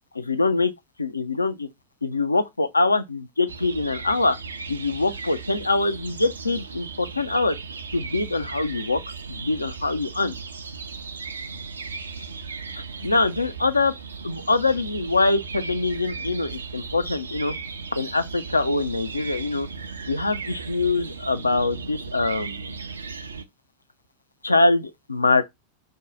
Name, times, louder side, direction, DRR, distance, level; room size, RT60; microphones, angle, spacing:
voice 1, 0.2-0.7 1.0-1.7 2.0-4.4 4.7-7.6 7.9-9.0 9.3-10.4 12.8-13.9 14.2-17.5 18.0-19.7 20.1-22.7 24.4-25.4, left 3 dB, 80° left, 0.4 m, -23 dB
sound 1, 3.5-23.5, right 5 dB, 75° right, 0.4 m, -36 dB
2.7 x 2.1 x 3.7 m
figure-of-eight pair, 90°, 0 cm